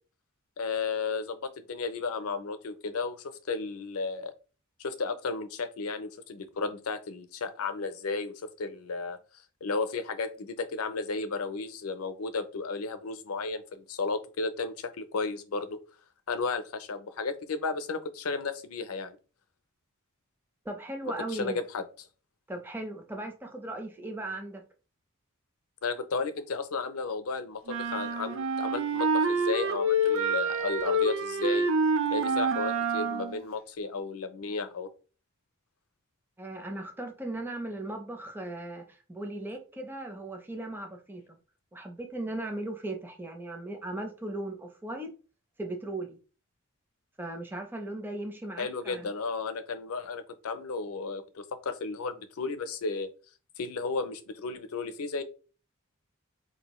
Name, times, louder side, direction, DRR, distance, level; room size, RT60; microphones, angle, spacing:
voice 1, 0.6-4.3 4.8-9.2 9.6-15.8 16.3-19.2 21.3-22.1 25.8-31.7 32.1-34.9 48.6-53.1 53.6-55.2, left 4 dB, 75° left, 0.5 m, -33 dB
voice 2, 20.6-21.6 22.5-24.6 36.4-41.4 41.7-45.1 45.6-46.2 47.2-49.1, right 1 dB, 10° right, 0.5 m, -37 dB
sound 1, 27.7-33.4, right 2 dB, 60° right, 0.4 m, -27 dB
4.0 x 2.6 x 3.0 m
head